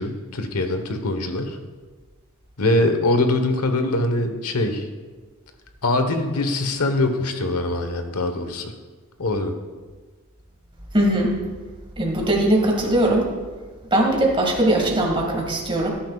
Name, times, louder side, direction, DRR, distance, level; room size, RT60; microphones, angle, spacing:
voice 1, 0.0-1.6 2.6-4.9 5.8-8.7 9.2-9.5, left 2 dB, 85° left, 7 dB, 1.2 m, -23 dB
voice 2, 10.9-11.4 12.0-13.3 13.9-15.9, right 1 dB, 25° right, -1 dB, 2.0 m, -20 dB
17.5 x 10.5 x 2.4 m, 1.4 s
head